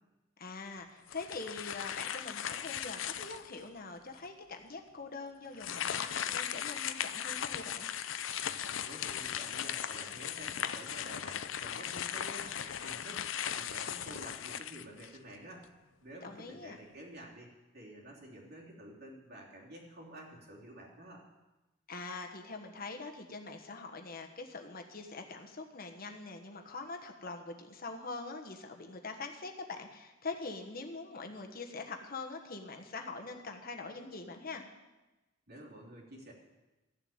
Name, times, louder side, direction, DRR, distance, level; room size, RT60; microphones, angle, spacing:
voice 1, 0.4-7.9 16.2-16.8 21.9-34.7, left 3 dB, 50° left, 4 dB, 1.3 m, -43 dB
sound 1, 1.1-3.6 4.2-4.3 5.5-15.3, left 9 dB, 85° left, 0.6 m, -38 dB
voice 2, 8.5-15.7 16.0-21.2 35.5-36.3, right 1 dB, 55° right, -2 dB, 3.1 m, -50 dB
14.0 x 7.4 x 8.7 m, 1.1 s
head